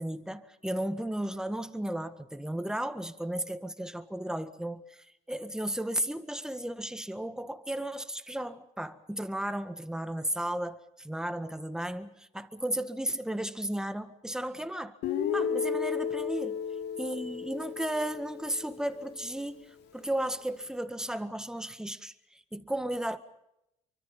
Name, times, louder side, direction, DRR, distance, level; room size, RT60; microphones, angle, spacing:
voice 1, 0.0-15.0 15.3-16.6 17.0-19.7 19.9-23.2, right 1 dB, 5° right, 1.7 m, -34 dB
Guitar, 15.0-19.0, left 7 dB, 80° left, 3.5 m, -33 dB
27.5 x 24.5 x 5.6 m
cardioid pair, 110°, 17 cm